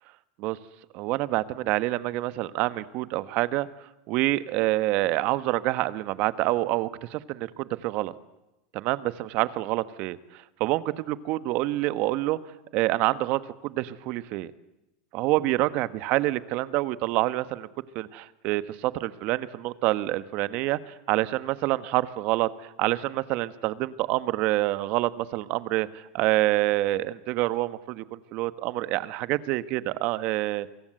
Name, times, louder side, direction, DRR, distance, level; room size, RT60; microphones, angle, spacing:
voice 1, 0.9-3.7 4.1-8.1 8.7-12.4 12.7-14.5 15.1-17.7 17.9-30.7, right 17 dB, 55° right, 14 dB, 1.4 m, -27 dB
29.0 x 23.5 x 8.0 m, 0.94 s
hypercardioid pair, 105°, 3 cm